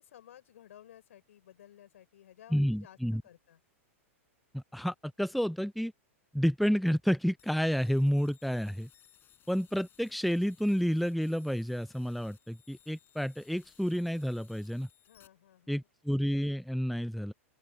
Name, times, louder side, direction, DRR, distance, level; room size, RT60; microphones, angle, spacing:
voice 1, 0.0-3.6 15.0-15.9, left 11 dB, 70° left, 6.3 m, -56 dB
voice 2, 2.5-3.2 4.5-5.9 6.3-8.9 9.5-14.9 15.7-17.3, equal, ahead, 0.7 m, -30 dB
sound 1, 7.4-15.3, left 10 dB, 30° left, 6.8 m, -63 dB
open air
hypercardioid pair, 105°, 7 cm